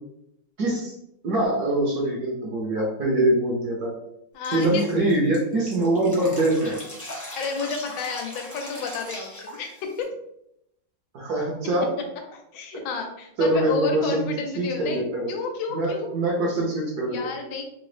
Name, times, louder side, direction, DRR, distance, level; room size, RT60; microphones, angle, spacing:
voice 1, 0.6-0.9 1.2-3.9 4.5-6.8 11.1-11.9 13.4-14.2 14.6-15.3 15.7-17.3, right 1 dB, 65° right, -3 dB, 1.1 m, -23 dB
voice 2, 4.3-4.8 7.3-10.1 12.3-16.1 17.1-17.6, left 4 dB, 85° left, 3 dB, 1.4 m, -31 dB
Drip, 4.4-10.0, equal, 15° left, 0.6 m, -39 dB
3.8 x 2.0 x 3.2 m, 0.79 s
omnidirectional pair, 2.2 m